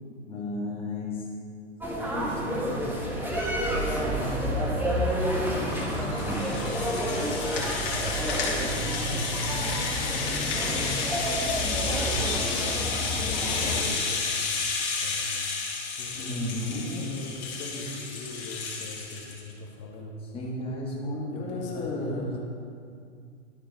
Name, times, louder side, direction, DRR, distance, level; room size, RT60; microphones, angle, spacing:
voice 1, 0.3-1.3 2.0-2.9 16.2-17.1 20.3-22.4, left 1 dB, 15° left, -4 dB, 1.3 m, -33 dB
sound 1, 1.8-13.8, equal, 5° right, 1.0 m, -29 dB
voice 2, 3.9-9.3 9.9-14.4 14.9-15.3 16.0-20.2 21.3-22.4, left 2 dB, 30° left, -1 dB, 1.4 m, -40 dB
Rattle (instrument), 5.2-19.4, left 4 dB, 50° left, 2.1 m, -31 dB
12.0 x 4.6 x 4.5 m, 2.3 s
hypercardioid pair, 120°, 36 cm